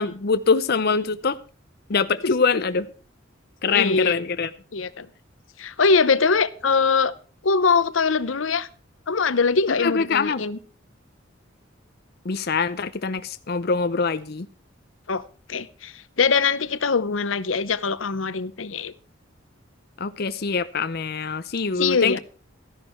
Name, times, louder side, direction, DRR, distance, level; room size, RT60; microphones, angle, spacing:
voice 1, 0.0-1.4 1.9-2.9 3.6-4.5 9.8-10.4 12.2-14.5 20.0-22.2, left 5 dB, 55° left, 11 dB, 0.7 m, -23 dB
voice 2, 3.7-4.1 4.7-5.1 5.6-7.1 7.4-8.7 9.1-10.6 15.1-15.2 15.5-18.9 21.8-22.2, left 4 dB, 85° left, 15 dB, 0.8 m, -22 dB
14.0 x 11.0 x 4.5 m, 0.39 s
head